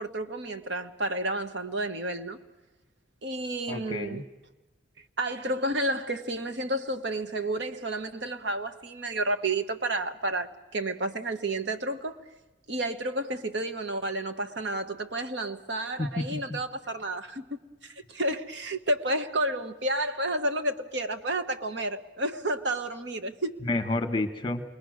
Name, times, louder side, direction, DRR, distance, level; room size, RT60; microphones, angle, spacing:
voice 1, 0.0-2.4 3.2-4.2 5.2-12.2 12.7-23.6, right 1 dB, 70° right, 1.4 m, -31 dB
voice 2, 3.7-4.2 16.0-16.6 23.6-24.6, left 2 dB, 25° left, 1.4 m, -30 dB
28.0 x 22.0 x 6.5 m
head